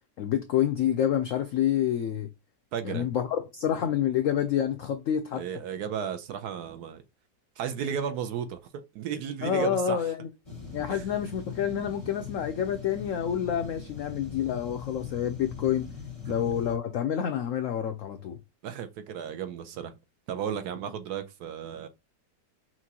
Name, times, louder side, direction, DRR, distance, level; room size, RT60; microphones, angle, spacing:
voice 1, 0.2-2.3 2.8-5.4 9.4-10.3 10.7-15.9 16.3-18.4, left 9 dB, 80° left, 0.7 m, -28 dB
voice 2, 2.7-3.1 5.3-7.0 7.6-10.0 10.9-11.0 18.6-19.9 20.3-21.9, right 8 dB, 70° right, 1.1 m, -34 dB
sound 1, 10.4-16.8, left 5 dB, 15° left, 1.2 m, -41 dB
5.9 x 2.4 x 2.8 m
omnidirectional pair, 1.9 m